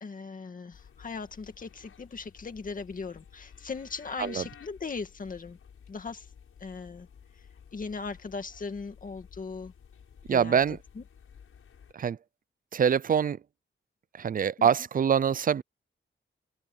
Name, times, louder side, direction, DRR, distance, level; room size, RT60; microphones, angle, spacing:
voice 1, 0.0-5.6 5.9-6.3 6.6-7.1 7.7-9.7 10.3-10.6 11.0-11.1 14.6-14.7, left 4 dB, 40° left, 2.1 m, -38 dB
sound 1, 0.7-11.9, left 7 dB, 90° left, 5.7 m, -54 dB
voice 2, 10.3-10.8 11.9-12.2 12.7-13.4 14.2-15.6, right 7 dB, 40° right, 0.4 m, -24 dB
open air
wide cardioid pair, 170°, 21 cm